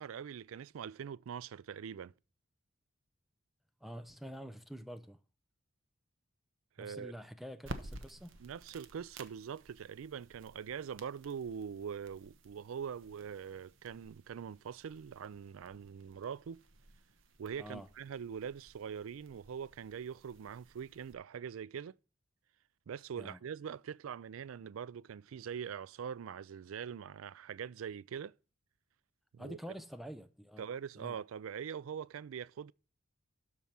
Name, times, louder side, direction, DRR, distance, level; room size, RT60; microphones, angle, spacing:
voice 1, 0.0-2.1 6.8-7.1 8.4-16.6 17.4-21.9 22.9-28.3 29.3-29.6 30.6-32.7, right 7 dB, 90° right, 0.4 m, -43 dB
voice 2, 3.8-5.2 6.8-8.4 17.6-17.9 23.2-23.4 29.4-30.7 31.0-31.2, equal, ahead, 0.6 m, -47 dB
sound 1, 7.6-21.1, right 2 dB, 75° right, 1.1 m, -53 dB
12.5 x 4.8 x 5.8 m
head